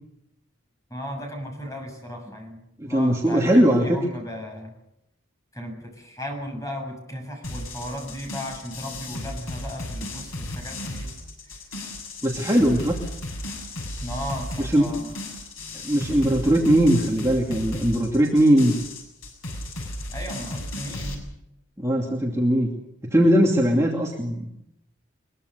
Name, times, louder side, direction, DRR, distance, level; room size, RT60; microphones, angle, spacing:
voice 1, 0.9-4.7 5.5-11.6 14.0-15.1 20.1-21.2, equal, 15° left, 3 dB, 7.1 m, -36 dB
voice 2, 2.8-4.0 12.2-13.0 14.6-14.9 15.8-18.8 21.8-22.7 23.1-24.5, equal, 15° right, -1 dB, 2.6 m, -20 dB
sound 1, 7.4-21.1, left 1 dB, 80° left, 7.3 m, -35 dB
22.5 x 22.5 x 6.8 m, 0.82 s
head